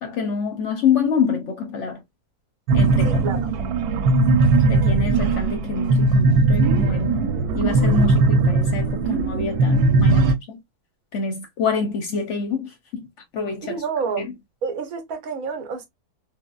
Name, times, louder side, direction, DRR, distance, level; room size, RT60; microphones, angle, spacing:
voice 1, 0.0-2.0 2.7-3.4 4.7-7.2 7.5-10.6 11.1-13.1 13.3-13.8 14.2-14.4, left 5 dB, 65° left, 0.8 m, -26 dB
sound 1, 2.7-10.3, right 3 dB, 90° right, 1.1 m, -19 dB
voice 2, 3.0-3.4 13.6-14.3 14.6-15.9, right 5 dB, 70° right, 1.2 m, -28 dB
3.7 x 2.0 x 2.2 m
omnidirectional pair, 1.6 m